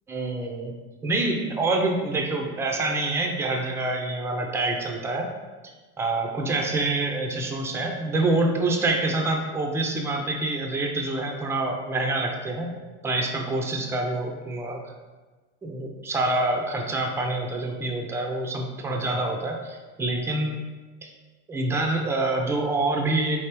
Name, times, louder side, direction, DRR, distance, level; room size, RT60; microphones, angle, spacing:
voice 1, 0.1-0.7 1.0-5.3 6.0-12.8 13.0-14.8 15.6-20.6 21.5-23.4, right 2 dB, 10° right, 2 dB, 0.3 m, -26 dB
3.3 x 3.2 x 4.4 m, 1.3 s
supercardioid pair, 130°, 34 cm